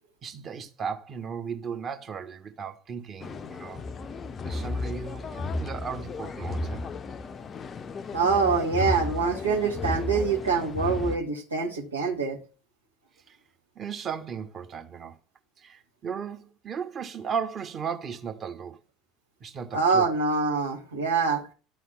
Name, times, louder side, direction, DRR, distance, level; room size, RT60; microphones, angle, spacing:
voice 1, 0.2-3.8 4.4-6.8 13.3-13.4 13.7-15.1 15.6-18.8 19.4-20.1, right 6 dB, 35° right, 1.5 m, -36 dB
sound 1, 3.2-11.2, left 3 dB, 30° left, 0.6 m, -34 dB
voice 2, 8.1-12.4 19.7-21.5, right 4 dB, 80° right, 1.9 m, -25 dB
12.0 x 4.2 x 7.1 m
figure-of-eight pair, 70°, 0 cm